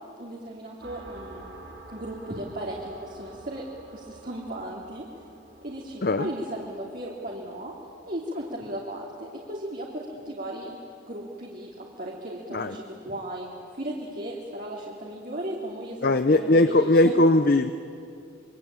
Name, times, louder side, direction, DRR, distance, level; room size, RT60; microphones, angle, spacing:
voice 1, 0.2-1.4 1.9-5.0 5.6-7.7 8.1-10.8 11.1-17.1, right 1 dB, 45° right, -3 dB, 2.9 m, -36 dB
sound 1, 0.8-10.1, right 2 dB, 70° right, 7.1 m, -49 dB
voice 2, 16.0-17.7, left 2 dB, 50° left, 10 dB, 0.7 m, -20 dB
26.5 x 24.0 x 8.9 m, 2.7 s
head